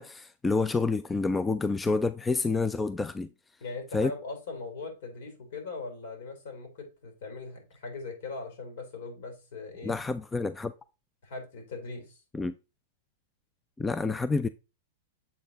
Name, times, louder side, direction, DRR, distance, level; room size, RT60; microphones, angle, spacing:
voice 1, 0.0-3.3 3.9-4.1 9.8-10.7 12.3-12.5 13.8-14.5, left 3 dB, 10° left, 0.3 m, -28 dB
voice 2, 3.6-9.9 11.2-12.2, left 3 dB, 70° left, 3.1 m, -40 dB
7.4 x 4.0 x 3.9 m
hypercardioid pair, 135°, 0 cm